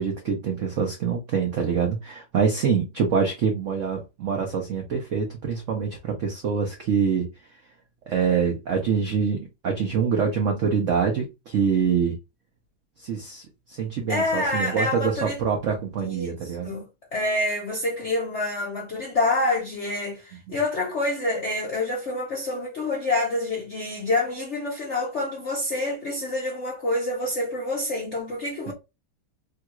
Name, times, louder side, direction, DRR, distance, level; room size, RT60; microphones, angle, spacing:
voice 1, 0.0-7.3 8.1-12.2 13.0-16.7 28.7-28.8, right 6 dB, 70° right, 0.7 m, -25 dB
voice 2, 14.1-15.4 16.0-16.8 17.1-28.7, left 2 dB, 65° left, 0.7 m, -27 dB
3.4 x 2.3 x 2.9 m
omnidirectional pair, 2.1 m